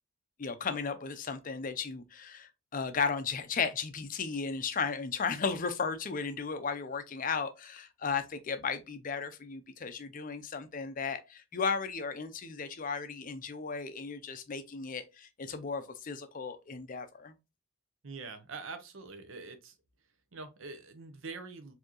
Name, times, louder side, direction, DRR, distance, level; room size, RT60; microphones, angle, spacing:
voice 1, 0.4-17.3, left 5 dB, 40° left, 0.5 m, -35 dB
voice 2, 18.0-19.8 20.3-21.7, right 4 dB, 65° right, 0.7 m, -44 dB
4.4 x 2.8 x 2.9 m
head